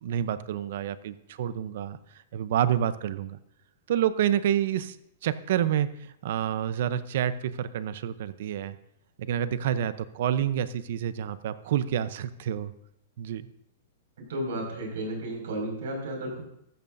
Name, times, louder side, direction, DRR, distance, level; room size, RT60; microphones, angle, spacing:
voice 1, 0.0-2.0 2.3-3.4 3.9-5.0 5.2-8.8 9.2-12.7 13.2-13.5, right 10 dB, 60° right, 14 dB, 0.7 m, -28 dB
voice 2, 14.2-16.4, right 1 dB, 75° right, 0 dB, 5.5 m, -33 dB
14.0 x 13.5 x 2.7 m, 0.76 s
hypercardioid pair, 160°, 0 cm